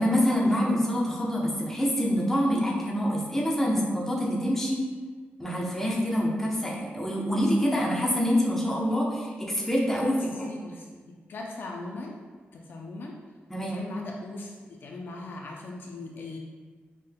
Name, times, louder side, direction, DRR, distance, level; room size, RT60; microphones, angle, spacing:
voice 1, 0.0-4.8 5.4-10.5 13.5-13.8, equal, 10° left, -4 dB, 0.7 m, -26 dB
voice 2, 10.0-11.0 11.3-12.1 12.5-13.1 13.6-14.5 14.8-16.4, left 2 dB, 60° left, 0 dB, 0.4 m, -39 dB
5.2 x 3.6 x 2.2 m, 1.5 s
wide cardioid pair, 155°, 4 cm